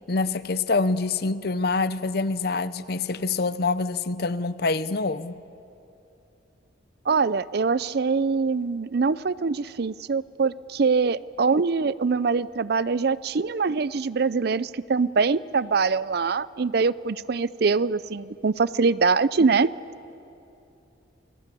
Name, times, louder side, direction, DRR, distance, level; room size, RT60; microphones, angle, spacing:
voice 1, 0.1-5.4, left 3 dB, 55° left, 15 dB, 0.7 m, -26 dB
voice 2, 7.1-19.7, right 4 dB, 55° right, 18 dB, 0.5 m, -23 dB
28.0 x 20.5 x 8.3 m, 2.9 s
head